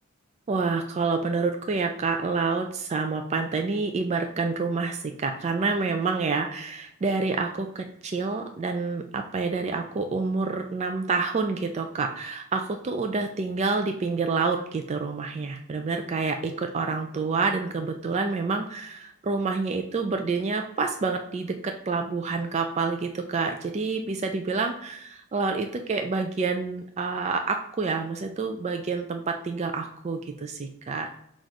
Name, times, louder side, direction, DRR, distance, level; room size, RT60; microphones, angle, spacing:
voice 1, 0.5-31.1, right 4 dB, 30° right, 5 dB, 0.3 m, -28 dB
4.1 x 2.5 x 4.5 m, 0.73 s
head